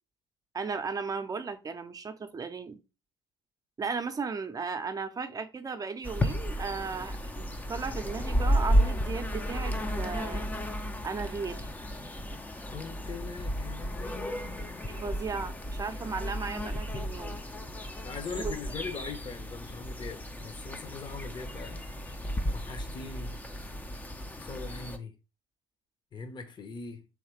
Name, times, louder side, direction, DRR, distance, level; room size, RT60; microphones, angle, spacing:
voice 1, 0.5-2.8 3.8-10.5 11.0-11.7 14.9-17.4 18.4-18.5, right 5 dB, 25° right, 0.7 m, -36 dB
sound 1, 6.0-25.0, equal, 10° left, 0.6 m, -33 dB
voice 2, 12.7-14.9 18.0-21.9 22.5-23.4 24.4-25.2 26.1-27.1, left 5 dB, 35° left, 0.9 m, -41 dB
3.6 x 3.2 x 4.4 m
hypercardioid pair, 60°, 14 cm